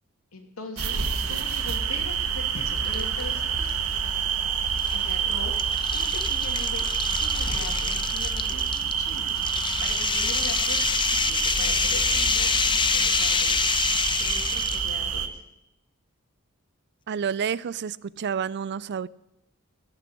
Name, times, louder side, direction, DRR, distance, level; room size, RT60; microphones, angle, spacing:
voice 1, 0.3-1.0 1.3-3.8 4.9-9.3 9.8-15.4, left 2 dB, 85° left, 4 dB, 2.7 m, -41 dB
sound 1, 0.8-15.3, right 7 dB, 80° right, 1.2 m, -27 dB
sound 2, 2.8-3.3 3.7-3.8 4.8-14.9, left 7 dB, 20° left, 0.4 m, -27 dB
voice 2, 17.1-19.1, right 7 dB, 55° right, 20 dB, 0.4 m, -29 dB
17.5 x 6.9 x 9.8 m, 0.90 s
head